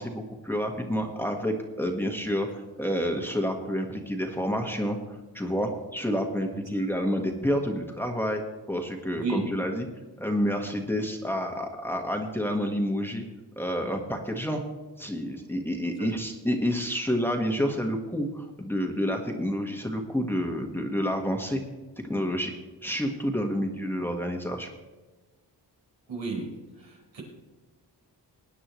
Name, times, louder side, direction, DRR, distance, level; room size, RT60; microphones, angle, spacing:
voice 1, 0.0-5.0 5.3-8.4 8.7-9.9 10.2-13.2 13.5-14.6 15.0-21.6 22.0-22.5 22.8-24.7, equal, 5° left, 2 dB, 1.5 m, -29 dB
voice 2, 9.1-9.5 16.0-16.1 26.1-27.2, right 4 dB, 80° right, -2 dB, 4.7 m, -33 dB
20.0 x 9.8 x 3.1 m, 1.2 s
wide cardioid pair, 100°, 44 cm